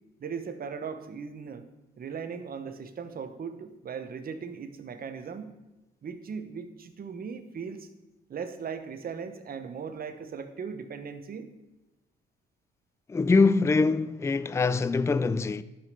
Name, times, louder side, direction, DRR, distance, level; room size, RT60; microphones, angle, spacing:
voice 1, 0.2-1.6 2.0-5.5 6.0-7.9 8.3-11.5, right 6 dB, 50° right, 1.2 m, -38 dB
voice 2, 13.1-15.6, left 4 dB, 15° left, 0.4 m, -23 dB
12.0 x 5.3 x 6.8 m
cardioid pair, 90°, 20 cm